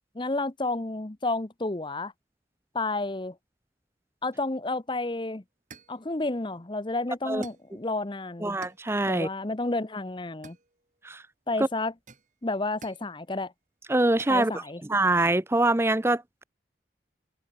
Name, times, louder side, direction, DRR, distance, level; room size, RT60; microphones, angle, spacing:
voice 1, 0.1-2.1 2.7-3.3 4.2-5.4 5.9-8.6 9.1-10.6 11.5-11.9 12.4-13.5 14.3-14.8, left 2 dB, 25° left, 0.8 m, -31 dB
sound 1, 5.0-5.1 5.7-6.0 7.4-7.8 8.6-8.9 10.4-11.1 12.1-13.1 14.2-14.5, right 4 dB, 40° right, 6.9 m, -49 dB
voice 2, 8.4-9.3 11.0-11.2 13.9-14.5 14.9-16.4, right 2 dB, 15° right, 0.6 m, -24 dB
head